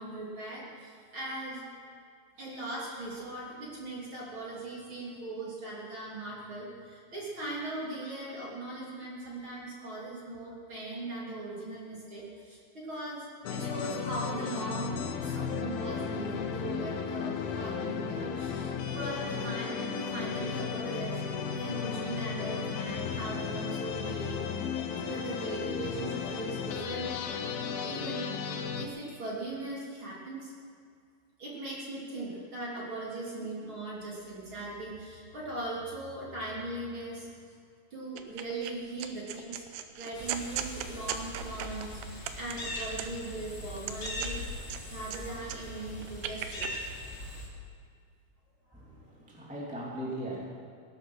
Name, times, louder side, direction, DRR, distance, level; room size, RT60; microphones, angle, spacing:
voice 1, 0.0-1.6 2.4-21.2 21.5-24.4 25.0-27.1 27.8-28.3 28.8-30.5 31.4-37.3 37.9-39.6 40.0-46.7 48.7-48.8, right 2 dB, 35° right, -5 dB, 3.2 m, -39 dB
sound 1, 13.4-28.9, left 6 dB, 75° left, 2.6 m, -34 dB
sound 2, 38.2-38.7 39.0-43.3 43.8-45.2 45.5-46.7, right 11 dB, 80° right, 2.9 m, -38 dB
sound 3, 40.1-47.5, left 1 dB, 30° left, 2.5 m, -40 dB
voice 2, 48.7-50.5, right 1 dB, 5° right, -5 dB, 1.8 m, -39 dB
19.0 x 11.5 x 6.2 m, 2.2 s
omnidirectional pair, 4.8 m